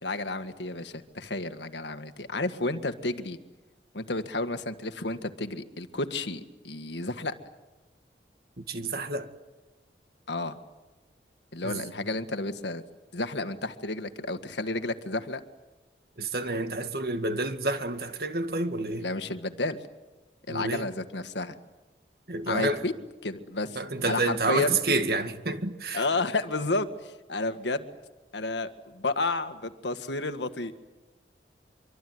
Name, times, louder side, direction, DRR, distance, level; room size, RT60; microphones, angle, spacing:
voice 1, 0.0-3.4 3.9-7.3 10.3-10.6 11.5-12.8 13.1-15.4 19.0-19.8 20.5-21.6 22.5-22.9 23.2-23.8 24.1-24.8 25.9-27.9 28.3-30.8, left 2 dB, 85° left, 1.9 m, -31 dB
voice 2, 8.6-9.3 11.6-11.9 16.2-19.1 20.5-20.9 22.3-22.9 23.8-26.0, right 2 dB, 60° right, 2.0 m, -29 dB
25.5 x 24.0 x 9.6 m
head